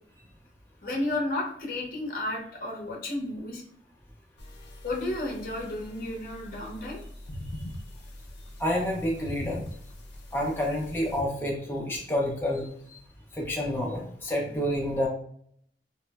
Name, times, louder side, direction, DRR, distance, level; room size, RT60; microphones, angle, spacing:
voice 1, 0.8-3.6 4.8-7.0, left 1 dB, 50° left, -1 dB, 0.7 m, -32 dB
sound 1, 4.4-11.2, left 1 dB, 90° left, 0.5 m, -42 dB
voice 2, 8.6-9.6 10.3-12.7 13.3-15.1, equal, 10° left, -2 dB, 0.5 m, -28 dB
3.0 x 2.0 x 2.3 m, 0.65 s
head